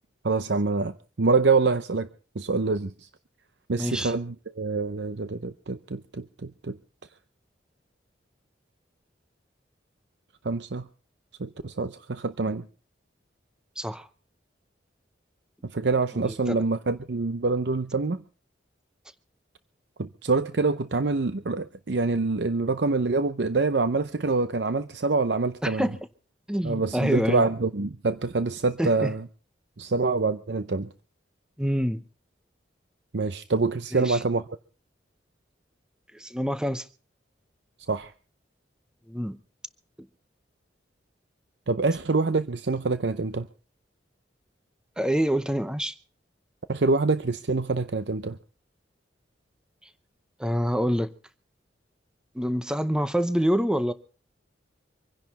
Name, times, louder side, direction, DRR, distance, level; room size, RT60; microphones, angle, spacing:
voice 1, 0.2-2.1 2.4-3.1 3.7-6.8 10.4-10.9 11.4-12.6 15.6-18.2 20.0-25.9 26.6-29.2 29.8-30.9 33.1-34.4 37.9-38.1 41.7-43.5 46.7-48.4, right 3 dB, 65° right, 0.7 m, -26 dB
voice 2, 3.8-4.1 13.8-14.1 16.2-16.6 25.6-26.0 26.5-27.4 28.8-29.1 31.6-32.0 33.9-34.2 36.1-36.9 39.1-39.4 45.0-45.9 50.4-51.1 52.3-53.9, equal, 5° right, 0.7 m, -26 dB
25.5 x 10.5 x 4.1 m
head